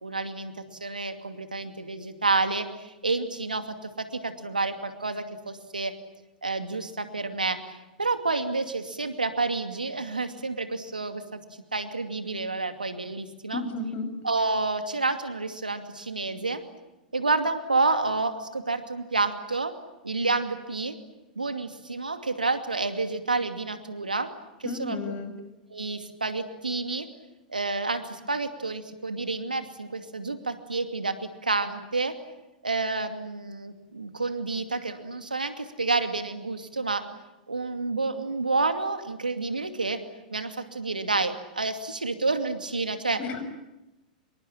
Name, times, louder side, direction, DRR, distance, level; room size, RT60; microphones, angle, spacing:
voice 1, 0.0-0.5 0.8-5.9 6.4-11.4 11.7-13.6 14.2-16.6 17.1-19.7 20.0-20.9 21.4-24.3 24.6-25.0 25.7-27.1 27.5-31.1 31.4-32.1 32.6-37.0 37.5-40.0 40.3-43.2, right 3 dB, 85° right, 8 dB, 2.5 m, -29 dB
voice 2, 13.5-14.1 24.6-25.3 43.2-43.4, left 3 dB, 35° left, 9 dB, 6.3 m, -32 dB
26.5 x 23.0 x 8.8 m, 0.98 s
figure-of-eight pair, 95°, 4 cm